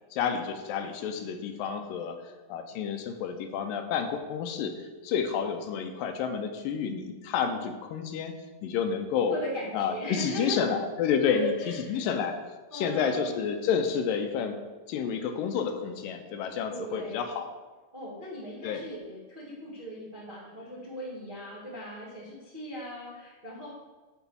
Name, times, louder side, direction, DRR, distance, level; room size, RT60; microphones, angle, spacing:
voice 1, 0.1-2.2 2.5-8.3 8.6-9.4 9.7-11.5 11.9-12.4 12.7-14.6 14.9-17.5 18.6-18.8, left 7 dB, 80° left, 6 dB, 2.4 m, -30 dB
voice 2, 9.3-10.6 11.3-12.1 12.7-13.5 16.7-17.4 17.9-23.7, equal, 30° right, -6 dB, 0.9 m, -38 dB
8.1 x 4.6 x 7.0 m, 1.2 s
omnidirectional pair, 4.0 m